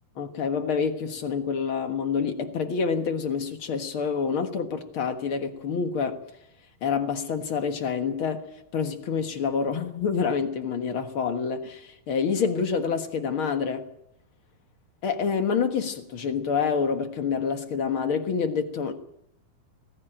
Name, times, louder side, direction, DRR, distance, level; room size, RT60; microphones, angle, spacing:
voice 1, 0.2-6.2 6.8-8.5 8.7-13.9 15.0-18.9, left 6 dB, 55° left, 1.5 m, -27 dB
20.0 x 15.5 x 9.0 m
omnidirectional pair, 4.3 m